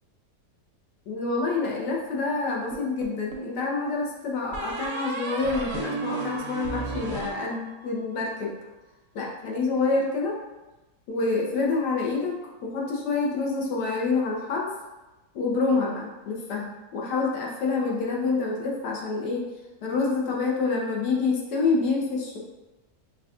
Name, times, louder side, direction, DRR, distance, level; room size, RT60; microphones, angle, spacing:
voice 1, 1.1-8.5 9.1-10.4 11.1-14.7 15.3-19.5 19.8-22.4, left 3 dB, 80° left, -2 dB, 1.3 m, -27 dB
sound 1, 2.7-3.6 4.5-8.0, right 4 dB, 65° right, 0.8 m, -34 dB
6.1 x 2.3 x 2.4 m, 1.1 s
omnidirectional pair, 1.8 m